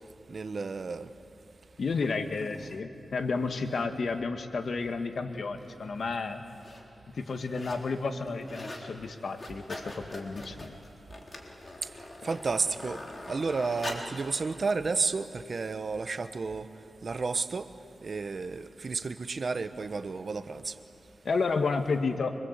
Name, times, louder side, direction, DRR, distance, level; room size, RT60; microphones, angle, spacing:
voice 1, 0.3-1.1 12.2-13.0 13.3-16.7 17.0-17.7 18.0-20.7, right 4 dB, 55° right, 10 dB, 1.1 m, -31 dB
voice 2, 1.8-6.4 7.1-10.8 21.2-22.4, left 4 dB, 65° left, 6 dB, 1.7 m, -31 dB
sound 1, 5.6-5.7 6.4-6.8 7.2-7.9 8.2-8.9 9.2-14.2 14.8-14.9, left 1 dB, 35° left, 3.7 m, -42 dB
25.5 x 25.0 x 8.2 m, 2.6 s
wide cardioid pair, 85°, 0 cm